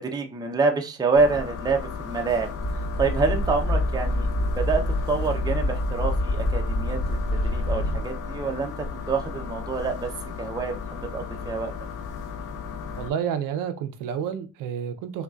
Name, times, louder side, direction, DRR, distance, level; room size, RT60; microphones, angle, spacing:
voice 1, 0.0-4.3 4.6-4.8 5.1-10.1 10.4-11.7, right 4 dB, 10° right, 0.5 m, -27 dB
sound 1, 1.2-13.1, left 5 dB, 60° left, 0.7 m, -35 dB
sound 2, 2.6-8.0, left 1 dB, 40° left, 1.1 m, -26 dB
voice 2, 13.0-15.2, right 8 dB, 70° right, 0.6 m, -30 dB
3.9 x 2.3 x 2.3 m
cardioid pair, 105°, 35 cm